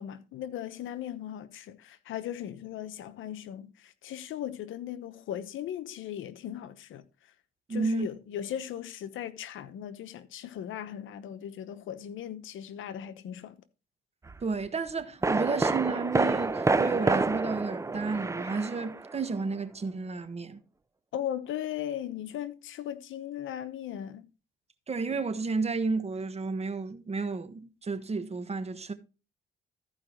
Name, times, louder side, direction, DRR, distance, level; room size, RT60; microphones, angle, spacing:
voice 1, 0.0-7.0 7.7-13.6 21.1-24.2, left 10 dB, 80° left, 0.9 m, -38 dB
voice 2, 7.7-8.1 14.4-20.6 24.9-28.9, right 4 dB, 30° right, 1.3 m, -32 dB
sound 1, 14.3-14.4 15.2-19.3 19.6-19.7, right 3 dB, 15° right, 0.5 m, -28 dB
14.0 x 4.9 x 4.4 m
cardioid pair, 90°, 20 cm